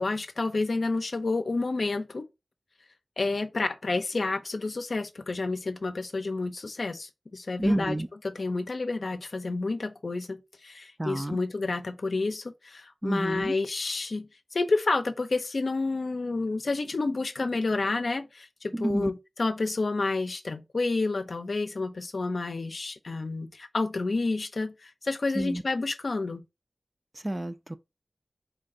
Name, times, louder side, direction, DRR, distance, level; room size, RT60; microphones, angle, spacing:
voice 1, 0.0-2.2 3.2-8.0 8.2-26.4, left 3 dB, 70° left, 0.5 m, -30 dB
voice 2, 7.6-8.1 11.0-11.4 13.0-13.5 18.7-19.1 25.3-25.6 27.1-27.8, right 1 dB, 25° right, 0.5 m, -29 dB
4.5 x 2.5 x 3.7 m
wide cardioid pair, 75°, 0 cm